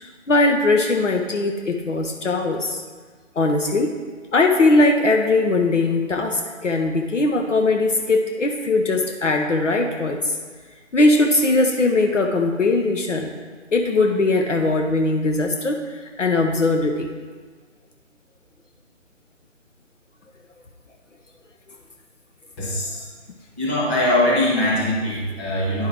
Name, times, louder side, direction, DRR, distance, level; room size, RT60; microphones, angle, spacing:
voice 1, 0.3-2.8 3.4-3.9 4.3-10.3 10.9-13.3 13.7-17.1, left 2 dB, 65° left, 3 dB, 0.9 m, -20 dB
voice 2, 22.6-23.0 23.6-25.9, left 1 dB, 10° left, -10 dB, 1.8 m, -21 dB
10.5 x 5.6 x 3.3 m, 1.5 s
figure-of-eight pair, 155°, 39 cm